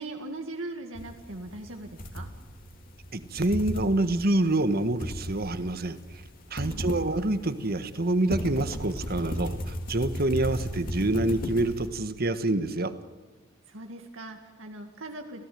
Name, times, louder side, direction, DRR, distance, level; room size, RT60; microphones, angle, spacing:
voice 1, 0.0-2.3 6.6-6.9 13.7-15.4, right 2 dB, 75° right, 3 dB, 2.1 m, -40 dB
sound 1, 0.9-11.9, equal, 45° left, 3.4 m, -36 dB
voice 2, 3.1-6.0 6.5-12.9, right 2 dB, 50° right, 11 dB, 1.5 m, -27 dB
28.0 x 17.0 x 9.4 m, 1.4 s
head